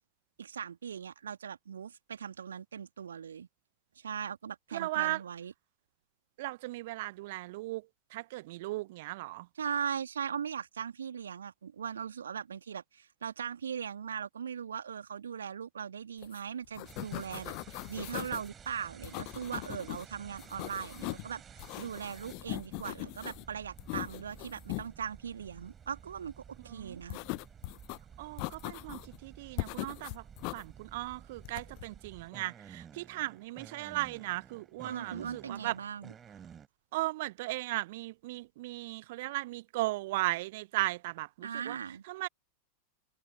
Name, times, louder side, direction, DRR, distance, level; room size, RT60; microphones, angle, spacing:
voice 1, 0.4-3.5 4.0-5.5 9.5-27.2 34.8-36.1 41.4-42.0, right 7 dB, 70° right, 2.4 m, -39 dB
voice 2, 4.7-5.2 6.4-7.8 8.1-9.4 26.7-27.0 28.2-30.2 30.5-35.7 36.9-41.8 42.1-42.3, right 19 dB, 50° right, 1.1 m, -36 dB
sound 1, 16.2-16.4 16.6-18.5 19.0-20.0 20.4-21.3 21.6-23.4 23.8-24.9 27.1-28.0 28.4-29.2 29.6-30.6 31.4-31.9, left 34 dB, 45° left, 1.0 m, -40 dB
sound 2, 16.8-36.7, right 8 dB, 20° right, 4.8 m, -53 dB
figure-of-eight pair, 90°, 0 cm